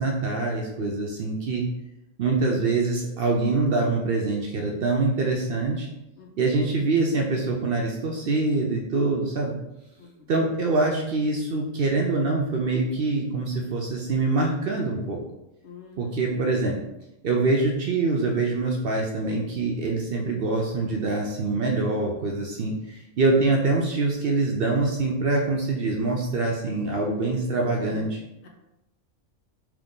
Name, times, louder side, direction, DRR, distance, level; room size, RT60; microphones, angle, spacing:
voice 1, 0.0-1.6 2.2-5.9 6.4-9.5 10.3-15.2 16.0-16.8 17.2-28.2, right 3 dB, 60° right, -1 dB, 0.6 m, -24 dB
voice 2, 10.0-10.3 15.6-16.4 28.4-28.5, left 6 dB, 65° left, 1 dB, 1.0 m, -47 dB
3.7 x 2.9 x 3.6 m, 0.92 s
omnidirectional pair, 1.3 m